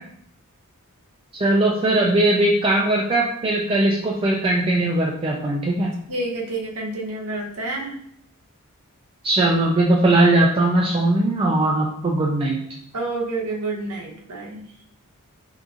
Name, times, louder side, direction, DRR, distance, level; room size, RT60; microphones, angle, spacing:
voice 1, 1.3-5.9 9.2-12.6, right 2 dB, 25° right, -1 dB, 0.3 m, -19 dB
voice 2, 6.1-8.0 12.9-14.6, right 2 dB, 85° right, -1 dB, 0.8 m, -29 dB
2.8 x 2.4 x 3.6 m, 0.68 s
head